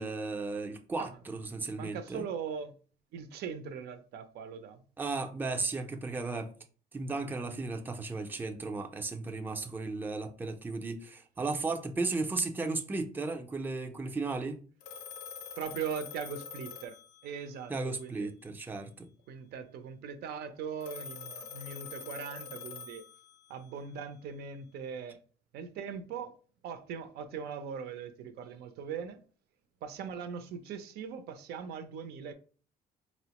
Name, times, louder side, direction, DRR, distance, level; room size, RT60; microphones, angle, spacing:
voice 1, 0.0-2.2 5.0-6.5 6.9-14.6 17.7-19.1, right 3 dB, 10° right, 0.5 m, -35 dB
voice 2, 1.8-2.7 3.1-4.8 15.6-18.3 19.3-23.0 23.5-25.2 25.5-26.3 26.6-29.2 29.8-32.3, right 6 dB, 75° right, 0.5 m, -40 dB
Telephone, 14.8-17.7 20.8-23.6, left 6 dB, 90° left, 0.6 m, -45 dB
4.1 x 2.0 x 2.9 m
cardioid pair, 110°, 17 cm